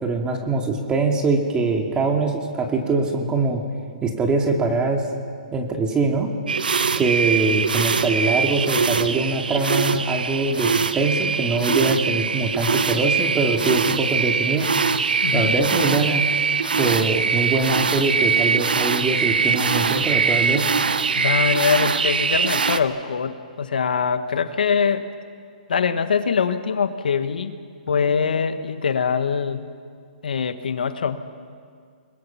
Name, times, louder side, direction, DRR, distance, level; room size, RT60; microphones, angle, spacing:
voice 1, 0.0-3.6 4.0-5.0 5.5-6.3 6.9-14.7 15.3-16.4 16.7-20.7, right 3 dB, 15° right, 2 dB, 2.4 m, -23 dB
sound 1, 6.5-22.8, right 5 dB, 85° right, 1.1 m, -22 dB
voice 2, 15.2-15.5 21.1-25.0 25.7-27.5 27.9-29.7 30.2-31.2, left 6 dB, 75° left, 10 dB, 1.5 m, -23 dB
30.0 x 21.0 x 5.9 m, 2.1 s
hypercardioid pair, 135°, 5 cm